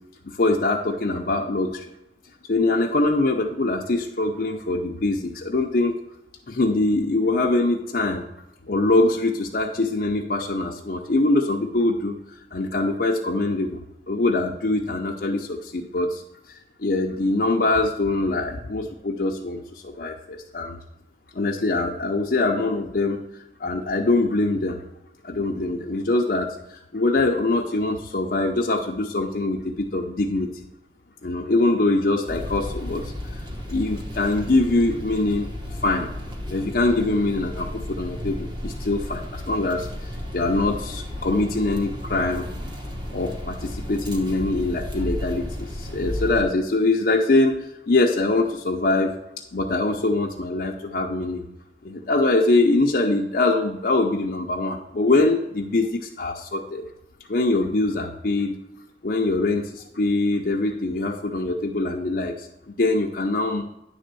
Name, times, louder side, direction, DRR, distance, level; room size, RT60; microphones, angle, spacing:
voice 1, 0.2-1.9 2.5-5.9 6.5-8.2 8.7-12.2 12.5-13.8 14.1-16.2 16.5-20.8 21.3-23.2 23.6-24.8 25.2-30.7 31.2-33.4 33.7-35.5 35.8-36.1 36.5-42.4 43.1-49.1 49.5-51.4 51.8-56.9 57.3-58.6 59.0-63.6, left 2 dB, 50° left, 0 dB, 0.6 m, -23 dB
sound 1, 32.3-46.4, left 1 dB, 25° right, 1.0 m, -33 dB
10.0 x 3.5 x 6.8 m, 0.90 s
head